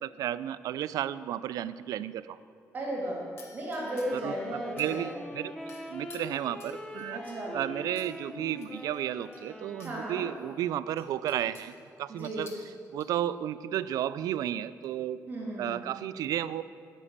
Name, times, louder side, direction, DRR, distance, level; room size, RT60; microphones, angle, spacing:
voice 1, 0.0-2.4 4.1-5.5 5.9-7.2 7.5-11.7 12.0-12.5 12.9-15.2 15.6-16.6, right 11 dB, 75° right, 15 dB, 0.4 m, -33 dB
voice 2, 2.7-3.2 3.5-5.1 7.1-7.6 9.8-10.3 12.1-12.5 15.3-15.8, right 1 dB, 30° right, -3 dB, 2.1 m, -35 dB
sound 1, 3.4-4.3 4.8-5.3 5.7-7.2 8.0-8.1 8.5-10.0 10.4-10.5 11.0-11.8 12.2-13.1, left 3 dB, 40° left, 1.4 m, -53 dB
Wind instrument woodwind instrument, 3.8-10.7, left 1 dB, 10° left, 0.7 m, -44 dB
11.0 x 5.4 x 8.6 m, 2.3 s
cardioid pair, 180°, 6 cm